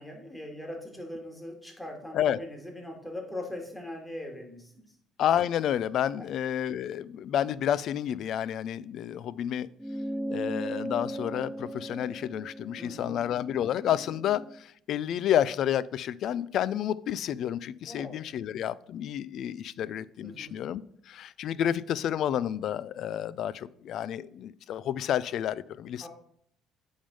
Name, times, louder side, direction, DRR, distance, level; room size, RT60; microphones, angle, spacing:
voice 1, 0.0-4.8 6.2-6.3 12.8-13.2 17.9-18.2 20.2-20.6 26.0-26.1, left 1 dB, 10° left, 2 dB, 2.0 m, -40 dB
voice 2, 5.2-9.7 10.3-26.1, left 10 dB, 65° left, 19 dB, 0.3 m, -30 dB
sound 1, 9.8-14.6, right 1 dB, 5° right, 0.4 m, -37 dB
8.7 x 3.5 x 5.3 m, 0.65 s
cardioid pair, 95°, 0 cm